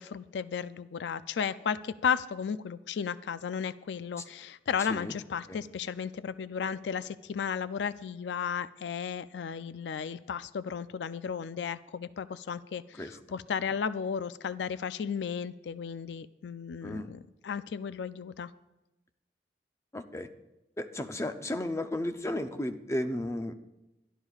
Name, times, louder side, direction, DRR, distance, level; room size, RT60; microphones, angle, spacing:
voice 1, 0.0-12.8 13.3-18.5, left 7 dB, 80° left, 14 dB, 0.4 m, -34 dB
voice 2, 4.8-5.1 5.5-5.6 12.9-13.2 16.8-17.1 19.9-20.3 20.8-23.5, left 1 dB, 15° left, 8 dB, 0.6 m, -34 dB
23.0 x 12.0 x 2.4 m, 0.96 s
head